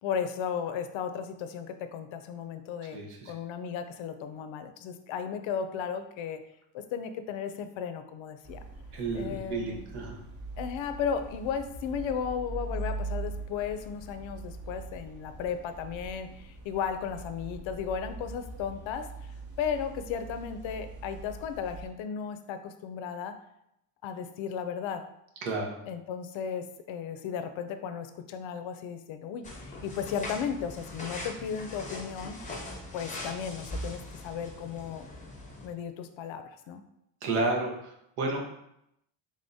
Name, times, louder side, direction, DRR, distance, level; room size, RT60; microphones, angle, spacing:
voice 1, 0.0-3.0 3.3-6.4 6.7-8.6 9.1-9.8 10.6-19.1 19.6-23.3 24.0-25.0 25.9-32.4 32.9-35.0 35.6-36.8, left 7 dB, 70° left, 9 dB, 0.5 m, -35 dB
voice 2, 2.9-3.3 8.9-10.2 25.4-25.8 37.2-38.4, right 3 dB, 85° right, 0 dB, 1.1 m, -31 dB
sound 1, 8.4-21.9, right 2 dB, 45° right, 1.0 m, -41 dB
sound 2, 29.4-35.7, left 1 dB, 15° left, 0.7 m, -41 dB
3.6 x 3.5 x 2.7 m, 0.79 s
cardioid pair, 145°, 49 cm